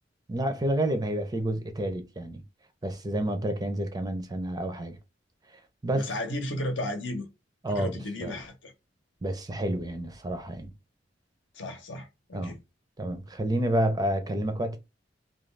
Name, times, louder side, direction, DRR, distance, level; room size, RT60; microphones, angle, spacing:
voice 1, 0.3-2.4 2.8-5.0 5.8-6.1 7.6-8.4 9.2-10.7 12.3-12.5 13.0-14.8, right 1 dB, 20° right, 0.4 m, -29 dB
voice 2, 5.9-7.3 7.7-8.7 11.5-12.6, left 1 dB, 75° left, 0.8 m, -34 dB
2.4 x 2.3 x 3.2 m
head